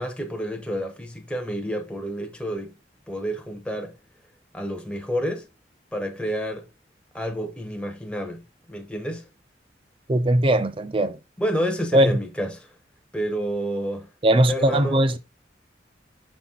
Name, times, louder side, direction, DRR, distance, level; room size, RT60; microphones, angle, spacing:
voice 1, 0.0-2.7 3.1-4.0 4.5-5.5 5.9-6.7 7.1-8.4 8.7-9.3 11.4-12.7 13.1-14.1 14.5-15.0, equal, 5° left, 0.8 m, -29 dB
voice 2, 10.1-11.2 11.9-12.2 14.2-15.2, right 1 dB, 30° right, 0.5 m, -19 dB
6.9 x 4.3 x 3.7 m
head